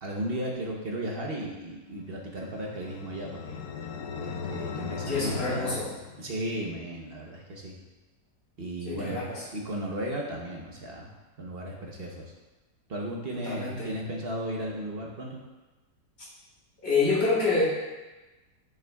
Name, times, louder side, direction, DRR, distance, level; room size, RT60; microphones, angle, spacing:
voice 1, 0.0-3.6 4.2-5.8 6.2-7.8 8.6-11.1 11.4-12.3 12.9-15.4, right 1 dB, 45° right, -1 dB, 0.9 m, -35 dB
sound 1, 2.1-6.7, left 6 dB, 70° left, 1.0 m, -38 dB
voice 2, 5.1-5.9 8.8-9.4 13.4-13.9 16.8-17.6, left 3 dB, 55° left, -8 dB, 3.1 m, -27 dB
9.0 x 6.1 x 2.3 m, 1.1 s
omnidirectional pair, 1.8 m